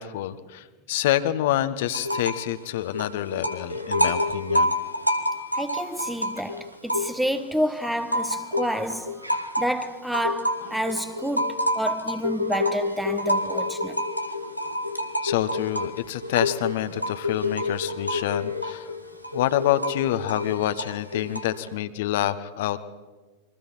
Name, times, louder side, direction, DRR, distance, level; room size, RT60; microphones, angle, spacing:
voice 1, 0.0-4.7 15.2-18.9 19.3-22.8, left 13 dB, 55° left, 1.4 m, -27 dB
sound 1, 1.9-2.5 2.8-7.4 7.8-21.7, left 1 dB, 90° right, 1.9 m, -28 dB
voice 2, 5.5-14.0, equal, 5° right, 1.2 m, -29 dB
29.0 x 24.0 x 5.7 m
figure-of-eight pair, 90°, 0 cm